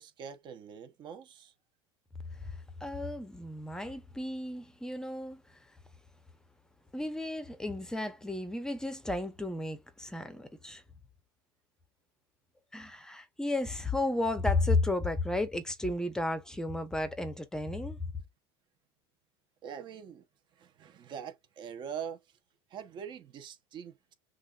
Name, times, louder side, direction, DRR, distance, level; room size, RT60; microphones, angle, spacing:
voice 1, 0.0-1.5 19.6-20.2 20.5-22.4 22.7-24.1, right 8 dB, 40° right, 1.0 m, -43 dB
voice 2, 2.4-5.6 6.9-10.8 12.7-18.0, left 2 dB, 5° left, 0.8 m, -33 dB
6.2 x 2.5 x 2.4 m
supercardioid pair, 135°, 13 cm